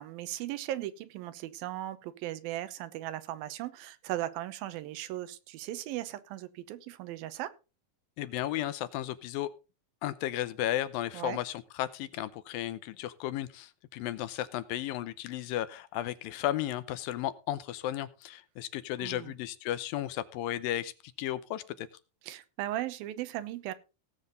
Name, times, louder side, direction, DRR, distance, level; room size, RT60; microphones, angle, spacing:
voice 1, 0.0-7.5 11.1-11.4 19.0-19.3 22.2-23.7, right 14 dB, 90° right, 14 dB, 2.7 m, -37 dB
voice 2, 8.2-9.5 10.0-20.9 21.2-21.9, left 13 dB, 80° left, 14 dB, 2.5 m, -34 dB
17.5 x 7.5 x 3.9 m, 0.31 s
omnidirectional pair, 4.1 m